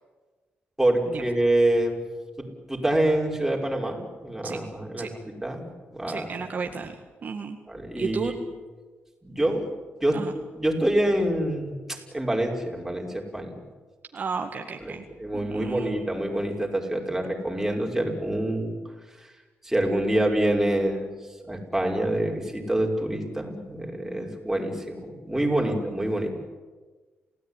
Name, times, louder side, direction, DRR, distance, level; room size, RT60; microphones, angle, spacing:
voice 1, 0.8-2.0 2.4-5.1 5.4-6.3 7.7-8.4 9.2-9.7 10.0-10.2 10.5-13.5 14.8-18.7 19.2-19.3 19.6-21.1 21.4-26.3, right 1 dB, 5° right, 0 dB, 5.4 m, -26 dB
voice 2, 6.1-7.6 8.0-8.3 10.1-10.3 14.1-15.1 15.4-16.0 25.6-25.8, right 5 dB, 45° right, 4 dB, 1.8 m, -33 dB
28.5 x 17.0 x 10.0 m, 1.3 s
cardioid pair, 105°, 4 cm